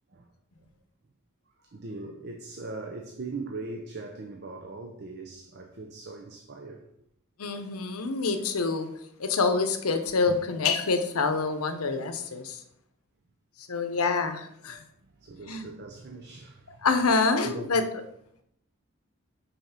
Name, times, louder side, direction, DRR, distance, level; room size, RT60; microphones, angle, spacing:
voice 1, 1.6-6.9 14.7-16.9 17.3-17.8, right 3 dB, 50° right, 0.6 m, -40 dB
voice 2, 7.4-8.9 9.2-12.6 13.7-14.8 15.5-15.7 16.8-17.8, left 4 dB, 85° left, 0.8 m, -26 dB
5.7 x 4.2 x 5.6 m
head